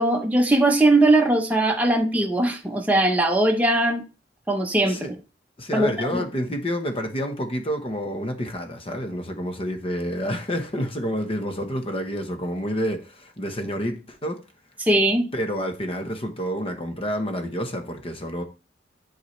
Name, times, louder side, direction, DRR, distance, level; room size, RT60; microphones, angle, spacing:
voice 1, 0.0-4.0 4.5-5.1 5.7-5.9 14.8-15.3, right 2 dB, 10° right, 0.8 m, -20 dB
voice 2, 5.6-14.4 15.3-18.4, equal, 30° left, 1.0 m, -29 dB
9.4 x 4.1 x 3.2 m
head